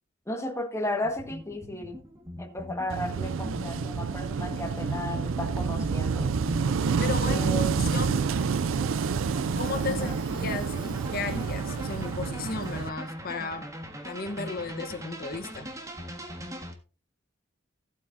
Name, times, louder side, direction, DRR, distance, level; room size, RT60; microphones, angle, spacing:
voice 1, 0.3-2.0 2.4-6.3 7.2-7.8 9.9-10.2, left 1 dB, 15° left, 1.6 m, -34 dB
sound 1, 1.0-16.7, equal, 15° right, 1.6 m, -41 dB
Wind / Waves surf, 2.9-12.9, right 5 dB, 80° right, 0.4 m, -28 dB
voice 2, 7.0-7.5 7.7-8.2 9.6-13.7 14.0-15.7, left 4 dB, 50° left, 1.1 m, -34 dB
sound 2, 8.3-12.9, right 5 dB, 60° right, 5.5 m, -54 dB
15.0 x 8.5 x 2.7 m
head